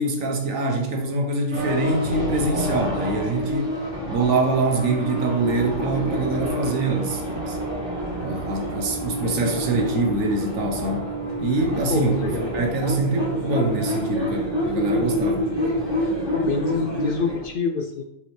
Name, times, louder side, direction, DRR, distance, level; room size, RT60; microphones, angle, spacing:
voice 1, 0.0-3.8 4.1-7.6 8.2-11.1 11.4-15.5, right 2 dB, 75° right, 1.5 m, -24 dB
sound 1, 1.5-17.4, equal, 20° right, 1.8 m, -27 dB
voice 2, 11.9-12.5 16.3-18.0, left 4 dB, 55° left, 0.7 m, -26 dB
7.7 x 5.3 x 3.3 m
omnidirectional pair, 1.4 m